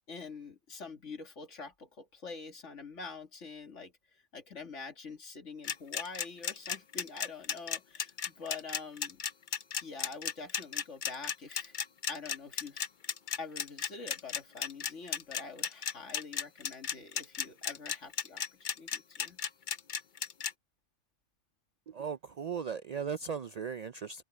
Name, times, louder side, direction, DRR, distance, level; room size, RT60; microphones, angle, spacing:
voice 1, 0.1-9.2 9.8-11.8 12.1-12.9 13.4-19.4, left 4 dB, 75° left, 2.5 m, -46 dB
sound 1, 5.6-20.5, left 7 dB, 50° left, 0.7 m, -34 dB
voice 2, 21.9-24.2, right 6 dB, 70° right, 0.3 m, -37 dB
omnidirectional pair, 1.2 m